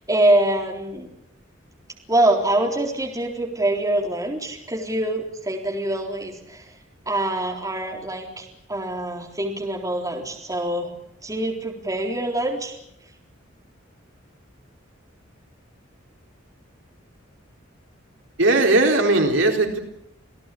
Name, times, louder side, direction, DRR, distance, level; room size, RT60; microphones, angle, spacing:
voice 1, 0.1-1.1 2.1-6.6 7.1-10.9 11.2-12.8, right 1 dB, 15° right, 1 dB, 3.9 m, -24 dB
voice 2, 18.4-19.8, right 2 dB, 70° right, 3 dB, 4.1 m, -18 dB
28.0 x 17.0 x 8.6 m, 0.76 s
head